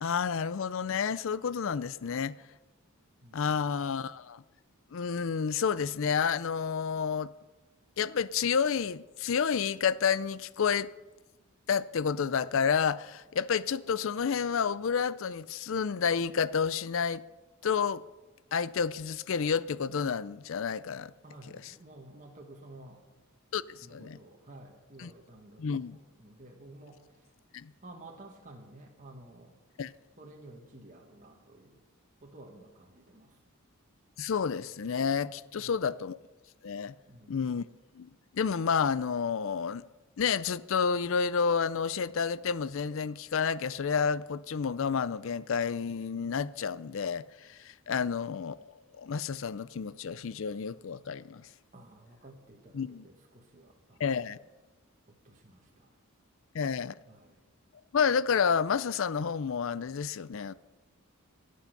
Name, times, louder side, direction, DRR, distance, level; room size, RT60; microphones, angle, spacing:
voice 1, 0.0-2.4 3.3-4.4 4.9-7.3 8.0-10.9 11.7-17.2 17.6-18.0 18.5-21.1 21.5-21.7 23.5-24.2 25.0-25.1 25.6-26.0 27.5-27.7 29.8-29.9 34.2-36.2 36.6-36.9 37.3-37.6 37.9-39.8 40.2-48.6 49.0-51.4 52.7-53.1 54.0-54.4 56.5-56.9 57.9-60.5, left 6 dB, 60° left, 0.4 m, -30 dB
voice 2, 3.2-3.5 21.2-23.0 23.8-27.0 27.8-29.5 30.2-31.8 32.2-33.4 35.5-35.7 37.1-37.4 51.7-54.0 55.1-55.9 57.1-57.4, right 1 dB, 35° right, 1.5 m, -52 dB
17.5 x 8.5 x 5.8 m
head